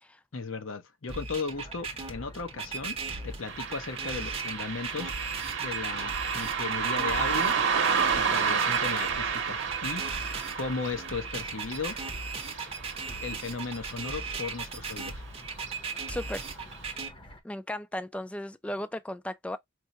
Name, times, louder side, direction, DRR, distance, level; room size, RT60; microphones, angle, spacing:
voice 1, 0.3-3.0 3.2-5.1 5.6-7.5 8.1-10.0 10.5-12.0 13.2-15.2, left 4 dB, 75° left, 0.8 m, -36 dB
sound 1, 1.1-17.1, right 4 dB, 30° right, 0.7 m, -37 dB
sound 2, 1.5-17.4, equal, 25° left, 0.8 m, -49 dB
Car passing by, 3.4-14.2 14.5-14.6 15.6-15.7 16.2-16.3 16.8-16.9, right 6 dB, 65° right, 0.8 m, -31 dB
voice 2, 16.1-16.5 17.4-19.6, left 1 dB, 5° left, 0.3 m, -36 dB
4.5 x 2.1 x 2.6 m
head